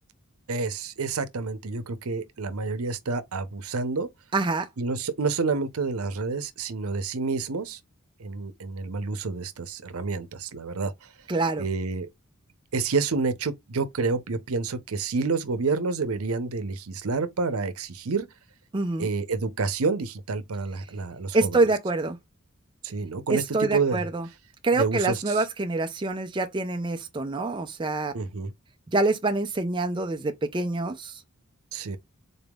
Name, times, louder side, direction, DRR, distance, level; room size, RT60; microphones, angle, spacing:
voice 1, 0.5-4.1 4.8-7.8 8.2-10.9 11.6-12.1 12.7-18.3 19.0-21.6 22.8-23.4 23.7-24.0 24.7-25.4 28.1-28.5 31.7-32.0, right 4 dB, 85° right, 0.7 m, -28 dB
voice 2, 4.3-4.7 11.3-11.7 18.7-19.1 21.3-22.2 23.3-24.3 24.6-28.1 28.9-31.2, right 2 dB, 20° right, 0.4 m, -26 dB
3.9 x 3.5 x 2.3 m
head